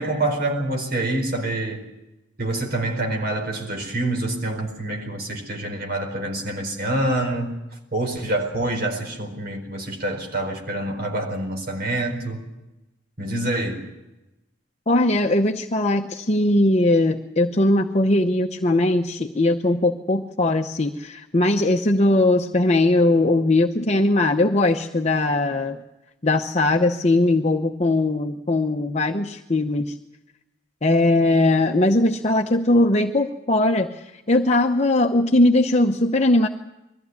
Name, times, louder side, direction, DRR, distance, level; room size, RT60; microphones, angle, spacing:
voice 1, 0.0-1.8 2.4-7.5 7.9-12.4 13.2-13.8, right 1 dB, 50° right, 4.6 m, -26 dB
voice 2, 14.9-25.8 26.2-30.0 30.8-36.5, left 2 dB, 35° left, 0.9 m, -20 dB
21.5 x 15.0 x 9.5 m
head